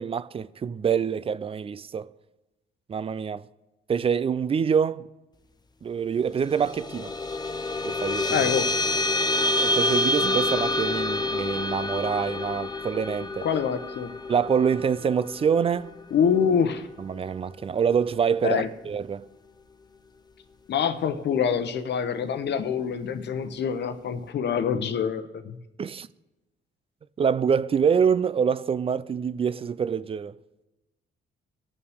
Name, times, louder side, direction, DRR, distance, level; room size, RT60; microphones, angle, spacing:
voice 1, 0.0-2.1 2.9-3.4 3.9-5.0 5.8-7.1 7.8-8.5 9.6-13.5 14.3-15.9 17.0-19.3 25.8-26.1 27.2-30.3, right 7 dB, 30° right, 0.4 m, -25 dB
sound 1, 6.4-17.2, left 2 dB, 20° left, 0.6 m, -28 dB
voice 2, 8.3-8.7 13.4-14.1 16.1-16.9 18.4-18.7 20.7-25.6, left 7 dB, 60° left, 0.9 m, -25 dB
19.5 x 7.0 x 3.5 m
cardioid pair, 90°, 20 cm